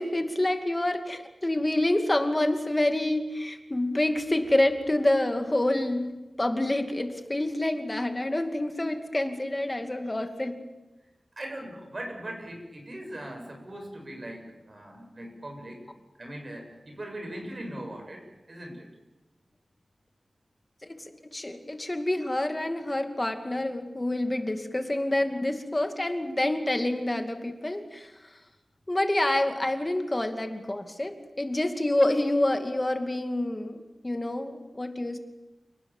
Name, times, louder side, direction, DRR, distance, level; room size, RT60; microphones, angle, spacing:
voice 1, 0.0-10.6 20.8-21.0 21.3-28.3 28.9-35.2, left 1 dB, 25° left, 6 dB, 2.4 m, -27 dB
voice 2, 11.4-15.8 16.2-18.9, right 1 dB, 45° right, 3 dB, 7.2 m, -40 dB
29.5 x 18.5 x 7.4 m, 1.1 s
wide cardioid pair, 75°, 0 cm